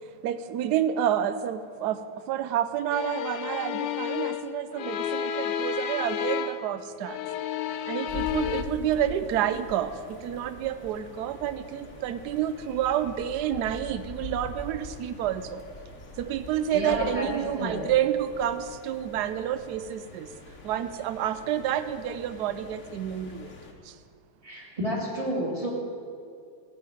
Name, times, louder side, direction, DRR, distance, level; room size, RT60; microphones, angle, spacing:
voice 1, 0.2-2.0 2.3-5.3 5.6-7.2 7.9-9.9 10.2-11.6 12.0-15.6 16.2-20.3 20.7-23.4, right 10 dB, 70° right, 12 dB, 1.1 m, -29 dB
sound 1, 2.9-6.7 7.0-8.6, left 8 dB, 75° left, 1.1 m, -31 dB
sound 2, 8.1-23.7, left 3 dB, 45° left, 1.3 m, -44 dB
voice 2, 16.7-17.8 24.4-25.7, equal, 15° right, -4 dB, 2.6 m, -30 dB
15.5 x 5.6 x 9.0 m, 2.3 s
omnidirectional pair, 2.1 m